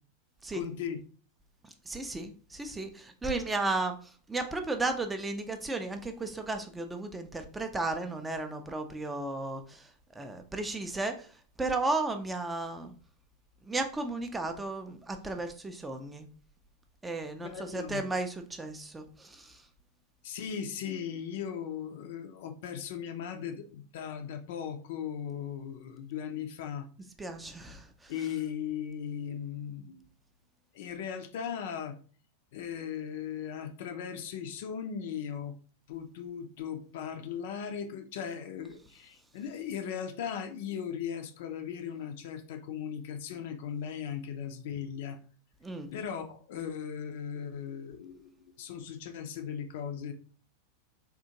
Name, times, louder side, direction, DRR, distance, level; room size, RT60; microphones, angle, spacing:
voice 1, 0.5-1.0 17.4-18.0 20.2-26.9 28.1-30.0 30.7-32.0 32.5-35.6 35.9-45.2 45.9-50.1, left 8 dB, 55° left, 0.4 m, -38 dB
voice 2, 1.6-12.9 13.6-16.3 17.0-19.7 27.2-28.1 45.6-45.9, right 2 dB, 10° right, 0.4 m, -34 dB
3.6 x 2.4 x 2.7 m
figure-of-eight pair, 90°, 0 cm